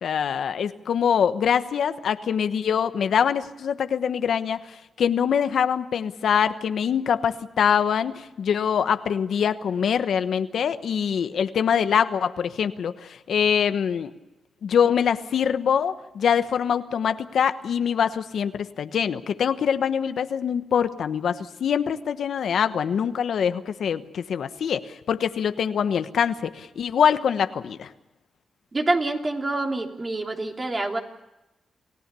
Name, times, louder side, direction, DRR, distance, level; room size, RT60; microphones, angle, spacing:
voice 1, 0.0-14.1 14.6-27.9, left 7 dB, 75° left, 10 dB, 1.0 m, -24 dB
voice 2, 28.7-31.0, right 2 dB, 35° right, 2 dB, 3.3 m, -26 dB
28.5 x 17.0 x 6.8 m, 1.0 s
cardioid pair, 85°, 0 cm